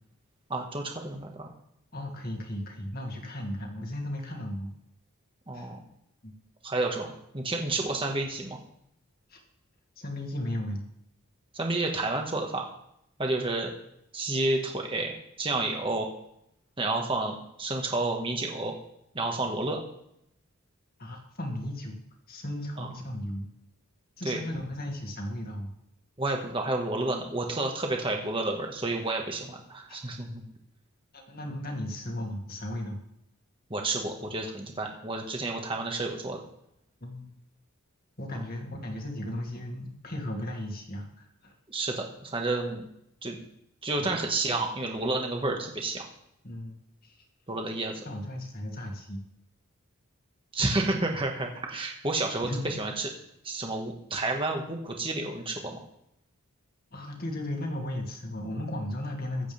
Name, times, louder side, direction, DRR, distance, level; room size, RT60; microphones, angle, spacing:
voice 1, 0.5-1.5 5.5-5.8 6.6-8.6 11.5-12.7 13.2-13.7 14.1-16.1 16.8-18.7 19.1-19.8 22.8-22.9 24.3-24.4 26.2-30.4 33.7-36.4 38.3-38.4 41.7-42.9 43.2-43.4 43.8-46.1 47.5-48.0 50.5-53.1 53.4-55.8, right 2 dB, 25° right, 1 dB, 1.7 m, -30 dB
voice 2, 1.9-4.7 5.5-5.7 6.2-6.3 9.3-9.4 10.0-10.8 21.0-22.0 22.3-23.5 24.2-25.7 29.9-30.0 31.1-33.0 37.0-37.3 38.2-41.5 44.0-44.1 46.4-46.8 47.0-47.2 48.1-49.2 52.4-52.7 56.9-59.5, left 1 dB, 40° left, 1 dB, 2.3 m, -35 dB
23.5 x 8.3 x 3.6 m, 0.77 s
head